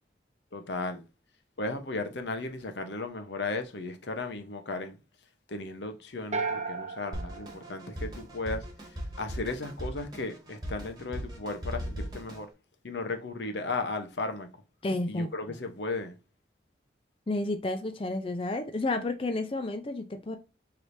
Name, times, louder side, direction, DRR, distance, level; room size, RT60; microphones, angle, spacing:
voice 1, 0.5-1.0 1.6-5.0 5.5-8.6 9.2-12.5 12.8-14.5 15.1-16.2, left 3 dB, 80° left, 0.8 m, -35 dB
sound 1, 6.3-8.6, right 4 dB, 40° right, 0.7 m, -35 dB
Drum kit, 7.1-12.5, equal, 20° right, 1.3 m, -38 dB
voice 2, 14.8-15.6 17.3-20.4, left 2 dB, 30° left, 0.4 m, -31 dB
4.8 x 3.2 x 2.6 m
head